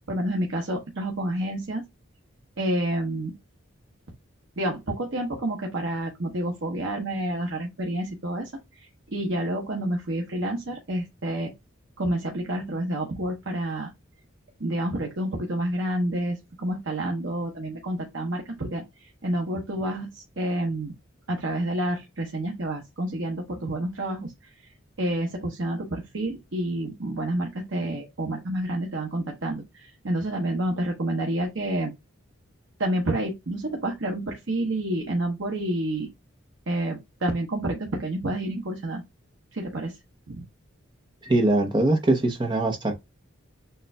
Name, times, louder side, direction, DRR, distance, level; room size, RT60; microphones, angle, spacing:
voice 1, 0.1-1.8 2.6-3.3 4.6-8.5 9.1-11.5 12.0-13.9 14.6-20.9 21.3-24.3 25.0-29.6 30.0-31.9 32.8-36.1 36.7-39.0 39.5-39.9 40.3-40.4, right 1 dB, 70° right, 0.9 m, -29 dB
voice 2, 41.2-42.9, right 2 dB, 20° right, 0.8 m, -22 dB
6.6 x 2.5 x 2.2 m
head